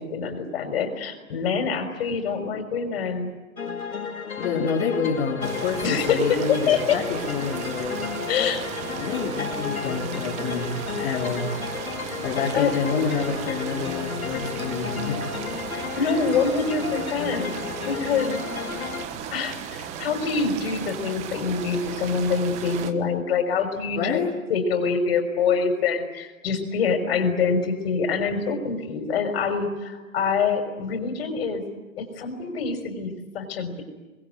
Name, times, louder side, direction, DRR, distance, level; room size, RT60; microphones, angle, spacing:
voice 1, 0.0-3.3 5.8-6.2 6.5-7.0 8.3-8.7 12.5-12.7 15.7-17.5 17.9-18.3 19.3-24.2 24.5-31.6 32.0-33.8, left 5 dB, 45° left, 6 dB, 6.1 m, -25 dB
sound 1, 3.6-19.1, left 6 dB, 85° left, 4.3 m, -33 dB
voice 2, 4.4-8.0 9.0-11.5 12.2-15.3 24.0-24.3, left 5 dB, 20° left, -5 dB, 4.4 m, -28 dB
sound 2, 5.4-22.9, right 8 dB, 15° right, 1.3 m, -36 dB
28.0 x 22.0 x 9.6 m, 1.2 s
hypercardioid pair, 155°, 42 cm